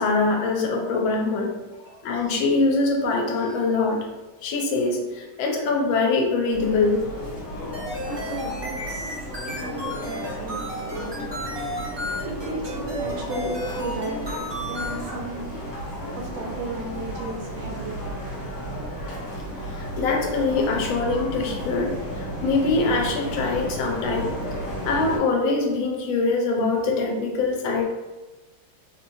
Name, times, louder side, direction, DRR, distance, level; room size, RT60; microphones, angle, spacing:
voice 1, 0.0-1.5 2.0-4.1 4.4-7.1 8.0-8.1 19.6-24.3 24.8-27.8, left 3 dB, 90° left, 1 dB, 1.4 m, -23 dB
sound 1, 6.5-25.2, equal, 65° left, 1.9 m, -33 dB
sound 2, 7.7-15.0, equal, 25° right, 0.6 m, -33 dB
voice 2, 8.1-9.1 9.4-11.3 11.8-15.5 16.1-18.2 20.8-20.9, right 2 dB, 70° right, -1 dB, 1.1 m, -35 dB
3.2 x 2.9 x 2.6 m, 1.1 s
omnidirectional pair, 2.1 m